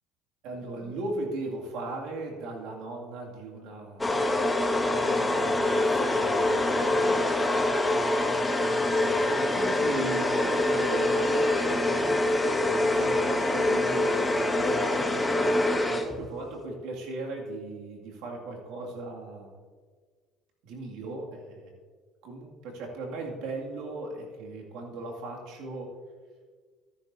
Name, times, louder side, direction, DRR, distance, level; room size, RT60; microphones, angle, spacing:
voice 1, 0.4-4.2 4.9-7.2 8.8-15.1 15.9-19.5 20.6-21.7 22.2-25.9, right 2 dB, 75° right, -1 dB, 2.2 m, -38 dB
sound 1, 4.0-16.4, left 2 dB, 10° left, 0.9 m, -25 dB
13.5 x 11.5 x 2.7 m, 1.6 s
supercardioid pair, 105°, 0 cm